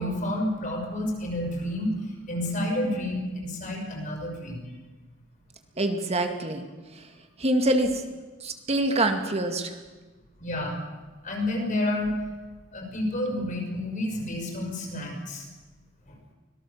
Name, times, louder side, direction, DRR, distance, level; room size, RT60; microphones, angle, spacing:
voice 1, 0.0-4.6 10.4-10.8 11.2-12.1 12.7-15.4, left 1 dB, 40° left, 1 dB, 5.9 m, -30 dB
voice 2, 5.8-6.7 7.4-7.9 8.4-9.7, right 1 dB, 30° right, 6 dB, 2.1 m, -25 dB
25.0 x 18.0 x 7.3 m, 1.2 s
head